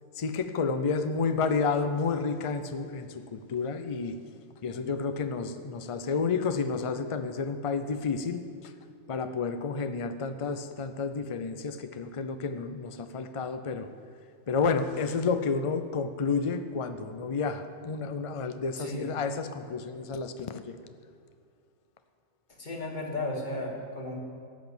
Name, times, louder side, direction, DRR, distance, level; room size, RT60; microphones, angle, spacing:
voice 1, 0.2-4.2 4.6-8.7 9.1-13.9 14.5-20.8, left 5 dB, 60° left, 9 dB, 0.3 m, -30 dB
voice 2, 18.8-19.1 22.6-24.2, left 2 dB, 35° left, 0 dB, 1.9 m, -34 dB
13.5 x 6.0 x 8.7 m, 2.3 s
omnidirectional pair, 1.3 m